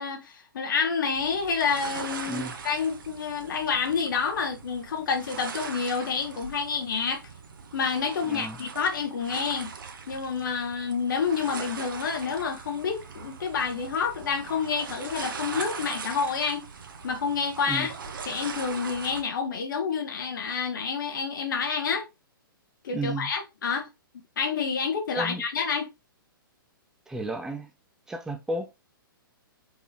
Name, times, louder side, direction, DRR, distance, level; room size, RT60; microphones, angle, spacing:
voice 1, 0.0-7.2 7.7-9.7 10.1-16.7 17.0-17.9 18.3-22.0 22.8-23.9 24.4-25.9, left 5 dB, 60° left, 1.3 m, -28 dB
sound 1, 1.1-19.2, right 5 dB, 65° right, 1.0 m, -40 dB
voice 2, 8.2-8.6 17.7-17.9 22.9-23.3 25.2-25.4 27.1-27.7 28.1-28.7, right 1 dB, 5° right, 0.5 m, -33 dB
4.7 x 3.2 x 2.7 m
figure-of-eight pair, 115°, 12 cm